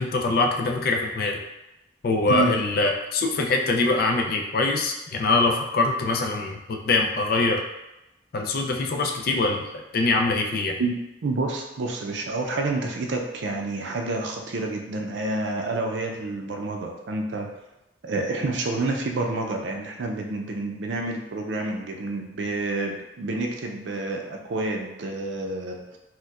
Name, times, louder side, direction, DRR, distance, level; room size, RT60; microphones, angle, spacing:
voice 1, 0.0-1.4 2.0-7.6 8.3-10.8, left 3 dB, 55° left, 2 dB, 0.4 m, -23 dB
voice 2, 11.2-17.5 18.0-26.0, right 2 dB, 85° right, 2 dB, 0.5 m, -29 dB
4.2 x 2.2 x 2.4 m, 0.95 s
head